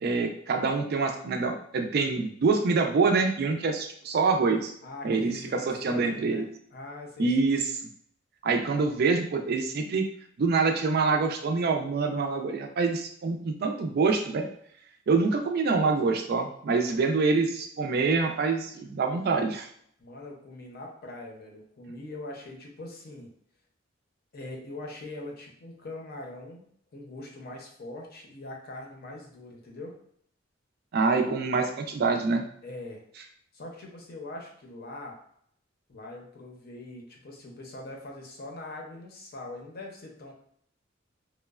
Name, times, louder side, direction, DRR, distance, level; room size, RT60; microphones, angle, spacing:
voice 1, 0.0-4.7 5.0-6.5 7.2-7.6 8.4-10.1 10.4-14.5 15.1-19.7 30.9-32.4, right 4 dB, 55° right, 4 dB, 0.4 m, -25 dB
voice 2, 4.8-6.4 6.7-7.5 20.0-23.3 24.3-26.6 26.9-29.9 32.6-33.0 33.5-35.2 35.9-40.3, left 2 dB, 50° left, 1 dB, 0.6 m, -42 dB
3.0 x 2.0 x 2.3 m, 0.65 s
head